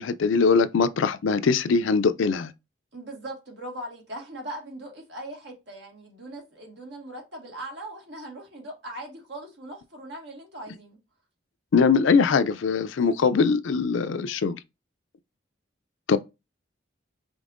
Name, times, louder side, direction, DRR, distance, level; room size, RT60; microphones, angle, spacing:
voice 1, 0.0-2.5 11.7-14.6 16.1-16.2, left 5 dB, 90° left, 0.4 m, -22 dB
voice 2, 2.9-11.0 13.0-13.3, right 1 dB, 65° right, 1.8 m, -40 dB
5.2 x 3.5 x 2.5 m
head